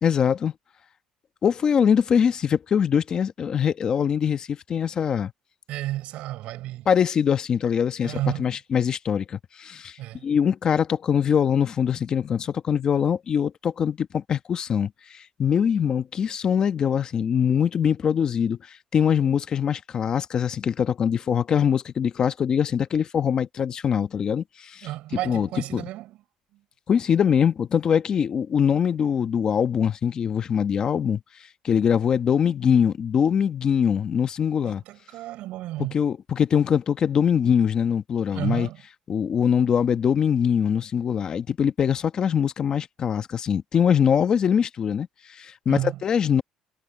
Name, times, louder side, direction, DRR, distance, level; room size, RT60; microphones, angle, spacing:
voice 1, 0.0-0.5 1.4-5.3 6.9-10.0 10.2-24.9 25.2-25.8 26.9-31.2 31.6-34.8 35.9-38.7 39.1-46.4, left 7 dB, 40° left, 1.1 m, -23 dB
voice 2, 5.7-6.9 8.0-8.6 10.0-10.3 24.8-26.2 26.5-26.6 34.7-36.0 38.3-38.8 45.7-46.0, right 15 dB, 75° right, 7.0 m, -32 dB
cardioid pair, 130°, 2 cm